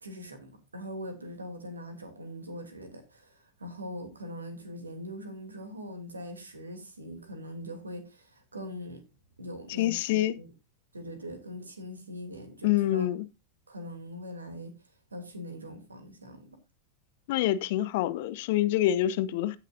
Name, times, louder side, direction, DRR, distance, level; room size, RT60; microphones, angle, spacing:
voice 1, 0.0-9.0 9.4-10.5 10.9-13.1 13.7-14.7 15.1-16.6, equal, 75° right, 2.8 m, -42 dB
voice 2, 9.8-10.3 12.6-13.2 17.3-19.6, left 13 dB, 50° left, 0.8 m, -26 dB
16.0 x 6.6 x 2.6 m
figure-of-eight pair, 90°, 0 cm